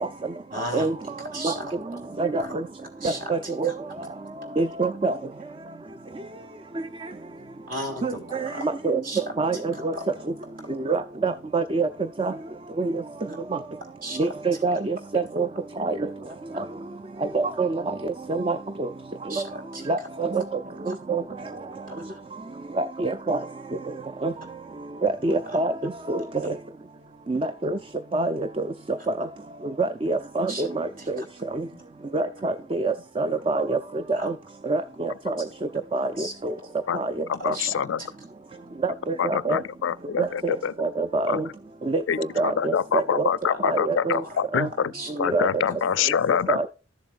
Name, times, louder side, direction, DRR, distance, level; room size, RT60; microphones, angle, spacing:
voice 1, 0.5-1.0 1.3-1.8 2.4-2.5 3.0-3.7 7.7-8.7 9.0-9.2 9.5-10.0 14.0-14.2 19.3-19.9 20.7-20.8 21.9-22.2 25.5-25.6 30.5-30.7 31.0-31.3 34.1-34.3 36.2-36.3 37.5-38.1 43.5-43.6 44.1-44.4 44.9-45.1, right 1 dB, 45° right, 3.4 m, -36 dB
voice 2, 2.2-2.6 3.0-3.7 4.6-5.2 8.0-9.0 9.4-9.9 10.7-11.9 12.2-12.3 12.8-13.0 14.2-15.5 15.8-16.0 17.3-18.9 19.9-20.4 20.9-21.2 22.8-23.4 24.2-24.3 25.0-25.7 26.1-26.5 27.3-27.8 28.1-28.5 28.9-29.3 29.8-30.9 31.1-31.2 31.5-31.6 32.1-33.8 34.1-34.3 34.7-35.3 35.9-36.5 36.9-37.1 37.5-37.6 38.8-39.6 40.2-41.4 41.9-43.3 43.6-44.2 44.5-44.7 45.3-45.5 46.5-46.7, right 3 dB, 25° right, 0.4 m, -26 dB
voice 3, 37.3-38.0 39.2-40.7 41.3-41.4 42.1-44.9 45.2-46.7, left 7 dB, 75° left, 0.4 m, -25 dB
13.5 x 7.2 x 2.4 m
head